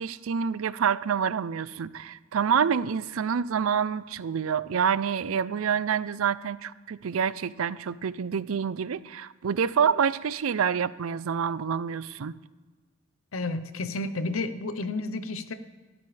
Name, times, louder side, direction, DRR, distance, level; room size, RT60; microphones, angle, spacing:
voice 1, 0.0-12.3, right 7 dB, 85° right, 17 dB, 0.5 m, -27 dB
voice 2, 13.3-15.5, left 2 dB, 80° left, 10 dB, 0.9 m, -31 dB
18.0 x 14.0 x 3.3 m, 1.3 s
head